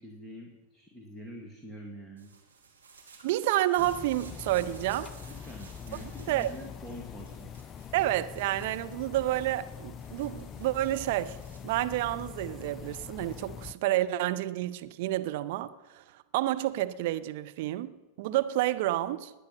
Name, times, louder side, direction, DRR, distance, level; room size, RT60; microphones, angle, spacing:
voice 1, 0.0-2.3 5.3-7.5, equal, ahead, 2.0 m, -45 dB
sound 1, 2.2-11.6, right 5 dB, 75° right, 2.7 m, -56 dB
voice 2, 3.2-5.1 6.3-6.5 7.9-11.4 11.6-16.0 16.3-19.3, right 15 dB, 50° right, 0.7 m, -29 dB
sound 2, 3.8-13.7, left 7 dB, 30° left, 0.4 m, -44 dB
20.0 x 9.0 x 5.8 m
figure-of-eight pair, 90°, 0 cm